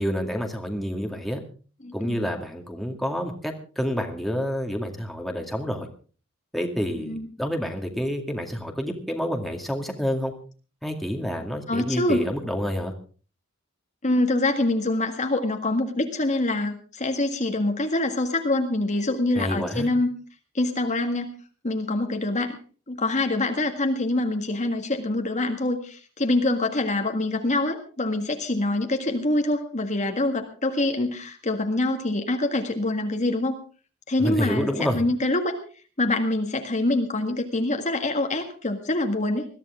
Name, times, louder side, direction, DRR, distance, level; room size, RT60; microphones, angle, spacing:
voice 1, 0.0-1.4 1.9-5.9 6.5-10.3 10.8-12.9 19.4-19.9 34.2-35.0, equal, ahead, 2 dB, 2.2 m, -28 dB
voice 2, 1.8-2.2 7.0-7.3 11.7-12.2 14.0-20.1 20.6-21.3 21.6-22.5 22.9-33.6 34.1-34.7 34.9-35.6 36.0-39.5, left 2 dB, 35° left, 4 dB, 1.8 m, -25 dB
21.5 x 14.5 x 3.7 m, 0.38 s
head